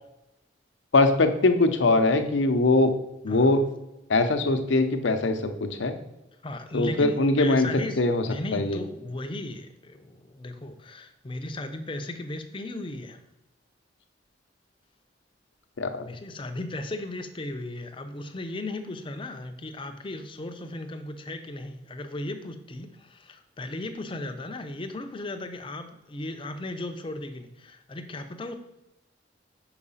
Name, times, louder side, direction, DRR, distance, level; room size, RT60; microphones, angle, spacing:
voice 1, 0.9-3.0 3.2-3.6 4.1-5.9 6.7-7.7 8.0-8.2 8.5-8.8 15.8-16.1, left 2 dB, 75° left, 8 dB, 0.7 m, -22 dB
voice 2, 6.4-8.0 8.3-13.2 16.0-28.5, left 2 dB, 25° left, 7 dB, 0.5 m, -36 dB
4.9 x 4.7 x 5.5 m, 0.92 s
head